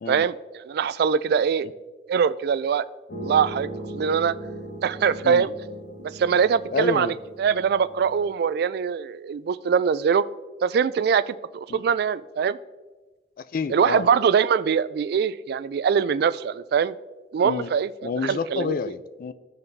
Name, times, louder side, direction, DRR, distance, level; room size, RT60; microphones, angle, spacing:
voice 1, 0.1-1.7 2.1-2.9 3.2-4.3 4.8-5.5 6.1-10.2 10.6-12.6 13.7-16.9 17.3-17.9 18.2-18.7, right 7 dB, 60° right, 17 dB, 0.3 m, -23 dB
sound 1, 3.1-8.3, right 1 dB, 75° left, 1.9 m, -38 dB
voice 2, 6.7-7.1 11.7-11.8 13.4-14.1 17.4-17.7 18.0-19.3, left 4 dB, 55° left, 14 dB, 0.4 m, -28 dB
14.5 x 5.7 x 2.6 m, 1.2 s
head